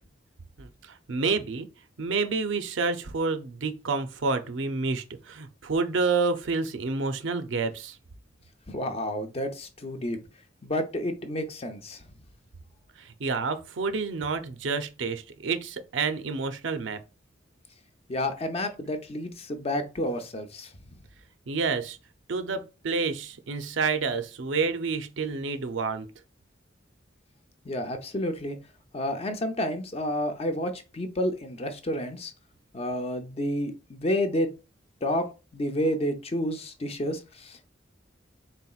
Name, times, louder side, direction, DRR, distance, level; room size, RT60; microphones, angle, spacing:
voice 1, 1.1-1.7 2.0-8.0 13.2-17.0 21.5-22.0 22.3-26.1, right 4 dB, 80° right, 0.6 m, -29 dB
voice 2, 8.7-10.2 10.6-12.0 18.1-20.7 27.6-28.6 28.9-32.3 32.7-34.5 35.0-35.3 35.5-37.6, equal, 35° left, 0.6 m, -30 dB
4.2 x 3.7 x 2.4 m
head